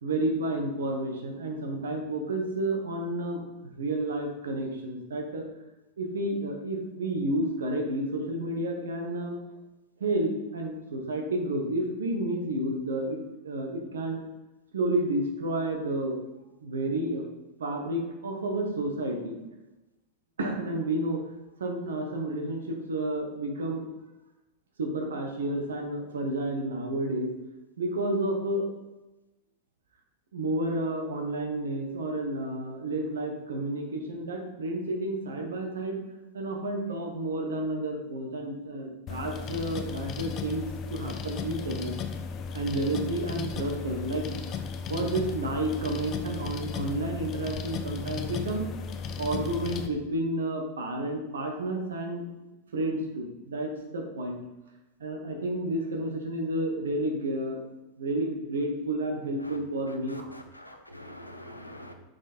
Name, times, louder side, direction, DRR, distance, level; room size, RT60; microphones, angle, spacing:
voice 1, 0.0-5.5 6.0-9.4 10.0-13.2 13.4-14.2 14.7-16.2 16.6-17.2 17.6-19.4 20.4-21.2 21.6-23.9 24.8-27.3 27.8-28.7 30.3-36.0 36.3-40.6 40.9-42.0 42.5-44.2 44.9-48.7 49.2-52.2 52.7-54.4 55.0-57.6 58.0-60.3, right 1 dB, 65° right, 2 dB, 1.1 m, -31 dB
sound 1, 39.1-49.9, left 5 dB, 30° left, 0.5 m, -35 dB
voice 2, 60.1-61.9, left 1 dB, 85° left, 5 dB, 0.6 m, -45 dB
6.0 x 4.4 x 4.3 m, 1.0 s
figure-of-eight pair, 90°, 0 cm